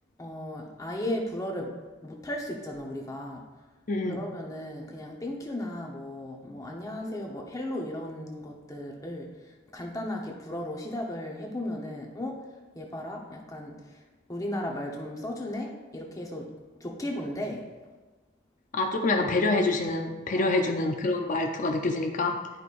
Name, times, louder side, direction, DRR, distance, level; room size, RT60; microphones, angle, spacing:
voice 1, 0.2-1.7 2.0-3.4 4.0-12.4 12.7-14.0 14.3-16.5 16.8-17.6 20.4-20.9, left 1 dB, 20° left, 0 dB, 0.9 m, -36 dB
voice 2, 3.9-4.2 18.7-22.4, left 2 dB, 40° left, 3 dB, 0.6 m, -26 dB
11.0 x 5.0 x 2.5 m, 1.3 s
head